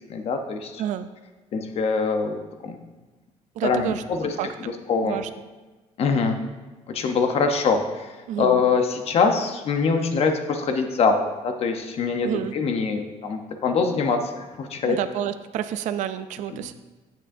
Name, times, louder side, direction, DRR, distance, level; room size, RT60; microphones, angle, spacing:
voice 1, 0.1-0.8 1.5-2.8 3.6-4.3 4.9-5.2 6.0-6.4 6.9-8.1 8.4-15.0 16.5-16.7, left 5 dB, 50° left, 6 dB, 0.8 m, -24 dB
voice 2, 0.8-1.1 3.6-4.0 4.4-4.5 5.0-5.3 8.3-8.6 12.2-12.5 14.8-16.7, right 10 dB, 70° right, 11 dB, 0.4 m, -29 dB
10.0 x 7.3 x 2.6 m, 1.2 s
cardioid pair, 135°, 13 cm